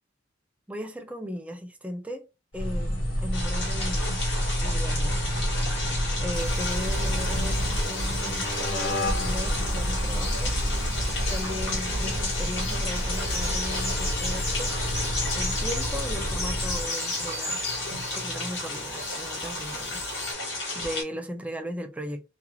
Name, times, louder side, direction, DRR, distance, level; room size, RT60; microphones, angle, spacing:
voice 1, 0.7-2.3 2.5-4.2 4.6-5.4 6.2-10.6 11.3-14.8 15.3-17.6 18.1-22.2, equal, 5° right, 0.4 m, -37 dB
sound 1, 2.5-16.9, equal, 85° left, 1.2 m, -29 dB
sound 2, 3.3-21.0, left 2 dB, 65° left, 1.4 m, -33 dB
sound 3, 6.3-20.3, left 2 dB, 15° left, 1.2 m, -38 dB
3.0 x 2.3 x 2.3 m
head